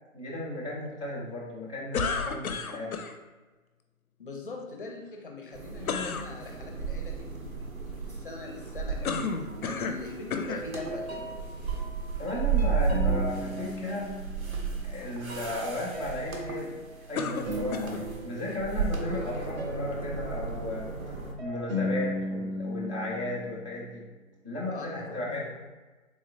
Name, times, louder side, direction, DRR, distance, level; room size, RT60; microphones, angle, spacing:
voice 1, 0.1-3.0 12.2-14.1 14.8-16.8 17.1-18.0 18.2-20.9 21.4-24.0 24.4-25.6, left 1 dB, 25° right, -7 dB, 0.4 m, -35 dB
sound 1, 1.9-3.1 5.8-6.3 9.0-10.0 10.3-10.7 11.5-11.6 17.2-18.1, left 5 dB, 90° left, 0.5 m, -31 dB
voice 2, 4.2-9.3 9.6-11.3 24.7-25.4, left 3 dB, 40° left, 1 dB, 0.5 m, -42 dB
sound 2, 5.5-21.3, right 5 dB, 75° right, 0.9 m, -34 dB
sound 3, 9.5-10.1 10.5-15.0 15.3-24.1, left 1 dB, 50° right, 0.8 m, -38 dB
3.6 x 3.1 x 2.6 m, 1.2 s
figure-of-eight pair, 150°, 42 cm